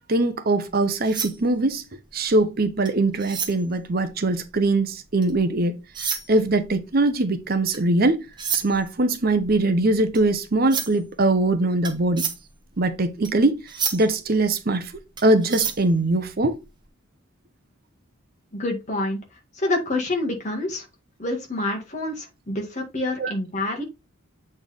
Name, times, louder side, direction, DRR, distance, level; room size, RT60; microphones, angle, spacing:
voice 1, 0.0-1.8 2.1-5.8 6.3-8.3 8.5-12.3 12.8-13.6 13.9-14.9 15.2-16.6 23.2-23.3, right 2 dB, 45° right, 0.7 m, -22 dB
sound 1, 0.7-5.5 5.8-16.8, right 6 dB, 20° right, 1.1 m, -33 dB
voice 2, 18.5-19.2 19.6-20.8 21.2-23.8, left 2 dB, 35° left, 1.9 m, -27 dB
7.7 x 4.3 x 3.5 m
head